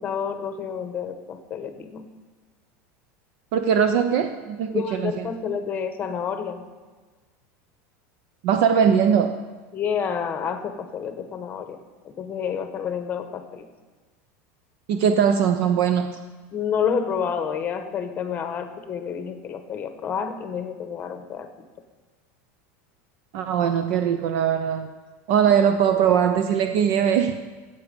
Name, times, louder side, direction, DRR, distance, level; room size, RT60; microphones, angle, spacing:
voice 1, 0.0-2.0 4.7-6.7 9.7-13.7 16.5-21.5, left 7 dB, 25° left, 8 dB, 1.1 m, -29 dB
voice 2, 3.5-5.3 8.4-9.4 14.9-16.2 23.3-24.9 25.3-27.3, right 8 dB, 60° right, 9 dB, 0.7 m, -21 dB
15.0 x 8.4 x 5.2 m, 1.3 s
supercardioid pair, 155°, 7 cm